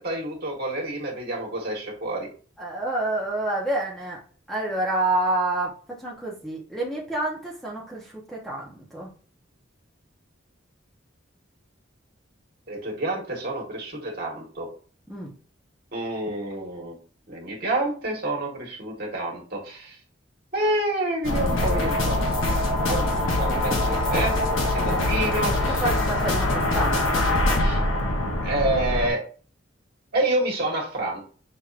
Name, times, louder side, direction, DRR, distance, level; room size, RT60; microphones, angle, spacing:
voice 1, 0.0-2.3 12.7-14.7 15.9-16.9 17.3-19.9 20.5-22.2 22.9-23.1 23.4-24.3 24.7-25.8 27.1-27.2 27.6-27.8 28.4-29.2 30.1-31.2, right 1 dB, 50° right, -1 dB, 1.3 m, -28 dB
voice 2, 2.6-4.2 4.5-5.7 6.0-9.1 15.1-15.3 24.8-25.1 25.8-27.7, right 2 dB, ahead, -3 dB, 0.8 m, -28 dB
sound 1, 21.2-29.1, left 1 dB, 85° left, 0.9 m, -23 dB
5.9 x 2.7 x 2.4 m, 0.39 s
head